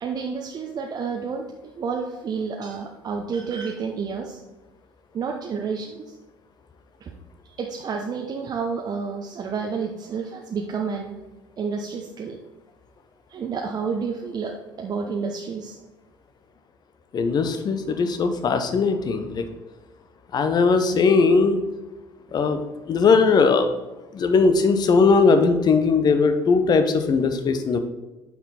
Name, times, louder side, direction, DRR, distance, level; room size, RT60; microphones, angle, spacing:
voice 1, 0.0-4.4 5.1-6.2 7.0-7.1 7.6-11.1 11.6-12.4 13.3-15.8, right 5 dB, 40° right, 1 dB, 0.9 m, -30 dB
voice 2, 17.1-19.4 20.3-21.6 22.3-22.6 22.9-23.7 24.1-27.8, left 4 dB, 40° left, 8 dB, 1.0 m, -19 dB
8.5 x 6.0 x 4.2 m, 1.1 s
figure-of-eight pair, 55°, 11 cm